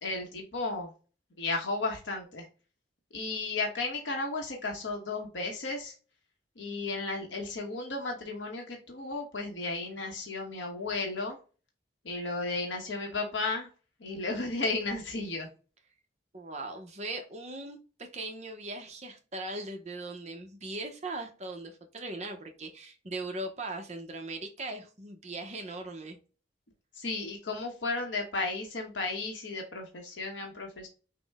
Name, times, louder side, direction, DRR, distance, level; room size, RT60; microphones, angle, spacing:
voice 1, 0.0-0.9 1.4-2.4 3.1-5.9 6.6-11.4 12.0-13.7 14.0-15.5 27.0-30.9, left 3 dB, 85° left, 1.0 m, -34 dB
voice 2, 16.3-26.2, right 2 dB, 40° right, 0.8 m, -39 dB
5.9 x 2.1 x 3.5 m
head